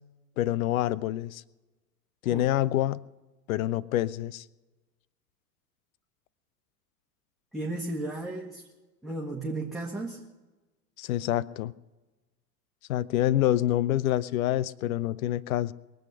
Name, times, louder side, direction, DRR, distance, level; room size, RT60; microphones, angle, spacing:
voice 1, 0.4-1.4 2.2-3.0 3.5-4.4 11.0-11.7 12.9-15.7, left 13 dB, 55° left, 22 dB, 0.6 m, -27 dB
voice 2, 7.5-8.6 9.0-10.2, right 2 dB, ahead, -3 dB, 1.7 m, -34 dB
22.5 x 7.9 x 6.7 m, 1.1 s
figure-of-eight pair, 80°, 50 cm